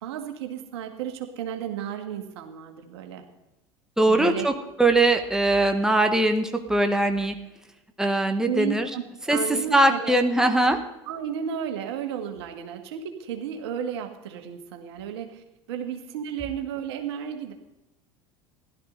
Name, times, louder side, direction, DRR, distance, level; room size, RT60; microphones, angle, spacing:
voice 1, 0.0-3.2 4.1-4.5 8.5-10.2 11.1-17.5, right 8 dB, 75° right, 5 dB, 1.9 m, -33 dB
voice 2, 4.0-4.5 4.8-7.3 8.0-8.9 9.3-10.8, right 2 dB, 5° right, 5 dB, 1.6 m, -21 dB
16.0 x 12.5 x 4.0 m, 0.95 s
hypercardioid pair, 75°, 14 cm